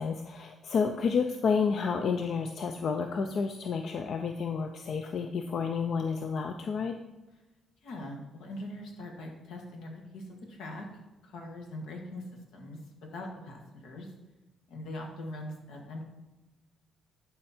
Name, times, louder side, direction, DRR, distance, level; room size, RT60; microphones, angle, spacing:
voice 1, 0.0-6.9, left 5 dB, 60° left, 6 dB, 0.5 m, -30 dB
voice 2, 7.8-10.9 11.2-12.2 12.5-12.8 13.1-14.1 14.7-16.0, left 1 dB, 85° left, 1 dB, 1.8 m, -42 dB
11.0 x 4.5 x 4.4 m, 1.1 s
cardioid pair, 90°, 0 cm